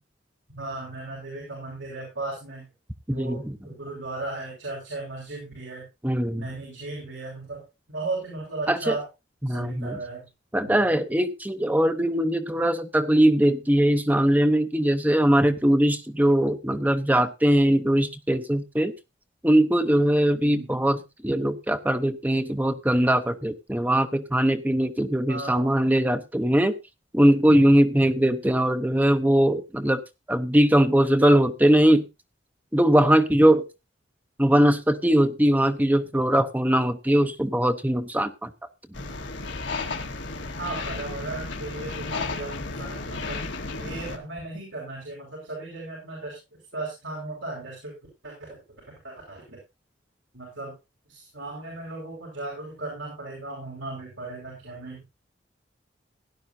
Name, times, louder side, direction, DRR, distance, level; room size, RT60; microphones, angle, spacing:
voice 1, 0.6-2.7 3.1-5.8 6.3-7.6 7.9-9.1 9.5-10.3 10.6-10.9 20.4-20.7 25.3-25.7 28.1-28.4 40.6-43.4 43.8-46.4 46.7-47.9 48.2-48.3 49.0-49.6 50.3-50.7 51.1-55.0, right 2 dB, 90° right, -2 dB, 5.5 m, -36 dB
voice 2, 3.1-3.6 6.0-6.5 8.7-9.0 9.4-10.0 10.5-18.9 19.4-26.7 27.1-30.0 30.3-32.1 32.7-33.7 34.4-38.5, right 1 dB, 10° right, 9 dB, 0.8 m, -21 dB
sound 1, 38.9-44.2, left 3 dB, 75° left, 1.6 m, -33 dB
17.0 x 11.0 x 2.7 m, 0.26 s
head